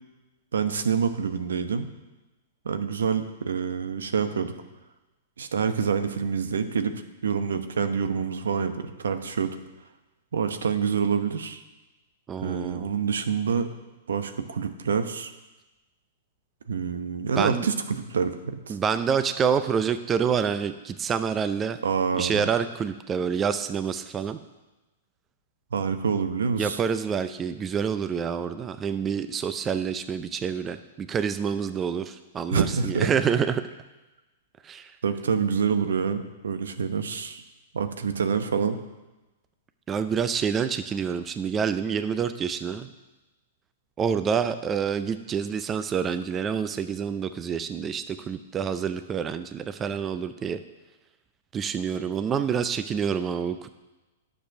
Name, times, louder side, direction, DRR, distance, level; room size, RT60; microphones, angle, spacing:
voice 1, 0.5-1.9 2.6-4.5 5.4-6.9 7.2-9.6 10.3-11.6 12.4-13.7 14.1-15.3 16.7-18.8 21.8-22.4 25.7-26.8 32.5-33.1 35.0-37.4 37.7-38.8, right 6 dB, 75° right, 9 dB, 0.9 m, -27 dB
voice 2, 12.3-12.9 17.4-17.7 18.7-21.8 22.1-24.4 26.5-33.6 34.6-35.0 39.9-42.9 44.0-50.6 51.5-53.7, right 7 dB, 20° right, 11 dB, 0.5 m, -27 dB
10.0 x 6.8 x 5.9 m, 1.1 s
hypercardioid pair, 110°, 0 cm